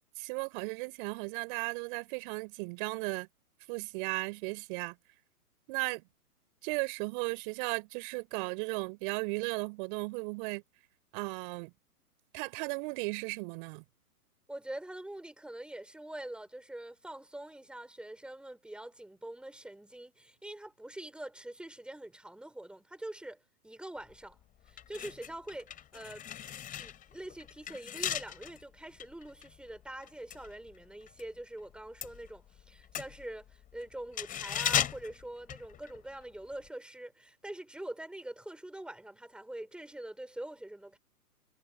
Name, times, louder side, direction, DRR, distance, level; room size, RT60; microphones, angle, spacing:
voice 1, 0.2-3.3 3.7-4.9 5.7-6.0 6.6-10.6 11.1-11.7 12.3-13.8, right 31 dB, 35° right, 4.7 m, -36 dB
voice 2, 14.5-24.4 24.7-26.3 26.8-41.0, right 1 dB, ahead, 5.8 m, -44 dB
sound 1, 24.1-24.3 24.7-31.3 31.6-36.2 36.5-36.7, left 10 dB, 15° left, 5.6 m, -37 dB
figure-of-eight pair, 130°, 46 cm